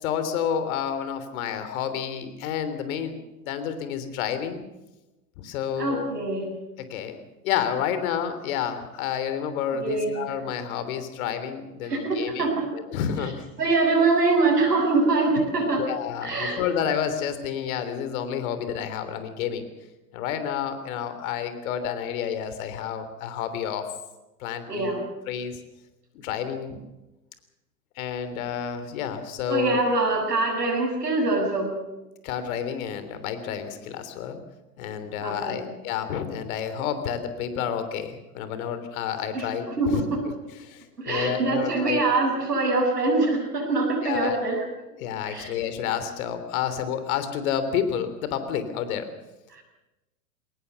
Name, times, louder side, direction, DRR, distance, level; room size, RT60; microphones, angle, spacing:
voice 1, 0.0-4.6 5.4-6.1 6.8-7.2 7.4-13.4 15.8-19.7 20.1-23.9 24.4-25.0 25.3-25.6 26.2-26.8 27.9-29.8 32.2-34.4 34.8-40.0 40.6-42.0 44.0-44.4 45.0-49.1, left 8 dB, 60° left, 11 dB, 3.3 m, -30 dB
voice 2, 5.8-6.4 9.7-10.3 11.9-12.7 13.6-15.8 16.2-16.6 24.7-25.0 29.5-31.7 35.2-35.6 39.3-39.5 39.8-40.2 41.0-44.6 45.3-45.5 49.5-49.6, right 3 dB, 90° right, 0 dB, 7.4 m, -24 dB
21.5 x 18.5 x 7.0 m, 1.0 s
hypercardioid pair, 100°, 46 cm